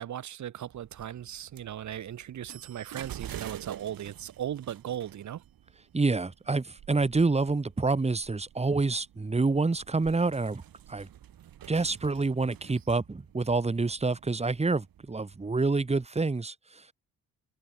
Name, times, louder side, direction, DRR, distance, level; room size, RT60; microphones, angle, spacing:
voice 1, 0.0-5.4, right 10 dB, 55° right, 0.9 m, -37 dB
sound 1, 0.7-16.1, right 11 dB, 75° right, 3.2 m, -49 dB
voice 2, 5.9-10.6 10.9-11.1 11.7-16.9, right 3 dB, 20° right, 1.5 m, -27 dB
open air
cardioid pair, 100°, 35 cm